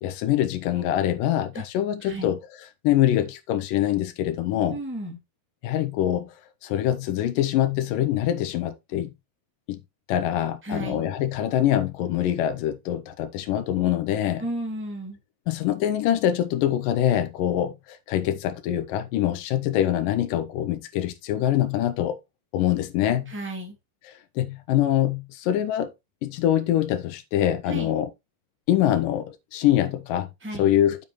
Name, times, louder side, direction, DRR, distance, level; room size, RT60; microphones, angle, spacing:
voice 1, 0.0-2.4 2.8-4.8 5.6-6.3 6.6-9.1 9.7-9.8 10.1-14.4 15.5-22.2 22.5-23.3 24.4-25.9 26.2-28.1 28.7-30.3 30.6-31.0, left 12 dB, 85° left, 2.4 m, -24 dB
voice 2, 2.0-2.3 4.7-5.2 10.6-11.1 14.4-15.2 23.3-23.8 27.6-27.9 30.4-30.7, right 1 dB, 5° right, 1.8 m, -33 dB
7.4 x 6.7 x 3.1 m
omnidirectional pair, 3.9 m